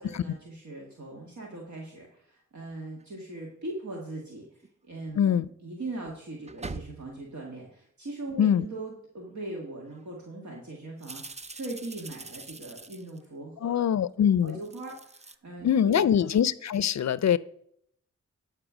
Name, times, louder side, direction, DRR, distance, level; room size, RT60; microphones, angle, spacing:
voice 1, 0.0-13.9 14.4-16.3, right 2 dB, 65° right, -1 dB, 1.8 m, -40 dB
sound 1, 3.0-3.1 4.6-4.7 6.0-7.3 9.3-9.4 9.8-10.0 11.0-13.2 14.4-15.3, right 3 dB, 20° right, 0.6 m, -43 dB
voice 2, 5.2-5.5 8.4-8.6 13.6-14.6 15.6-17.4, left 9 dB, 60° left, 19 dB, 0.5 m, -23 dB
12.0 x 4.4 x 6.1 m, 0.68 s
cardioid pair, 45°, 31 cm